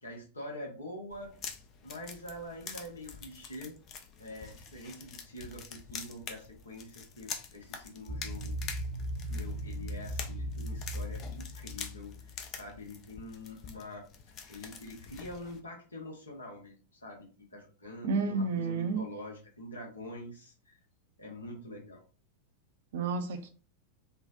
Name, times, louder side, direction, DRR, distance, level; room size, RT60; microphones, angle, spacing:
voice 1, 0.0-1.3 1.8-3.8 4.2-8.6 9.3-16.7 17.0-20.8 21.2-22.0, left 1 dB, 75° left, 1.2 m, -45 dB
sound 1, 1.1-15.6, left 6 dB, 35° left, 0.5 m, -46 dB
sound 2, 8.1-12.7, equal, 75° right, 1.3 m, -38 dB
voice 2, 18.0-19.1 22.9-23.5, right 4 dB, 55° right, 0.5 m, -31 dB
3.6 x 2.3 x 2.6 m
figure-of-eight pair, 90°, 0 cm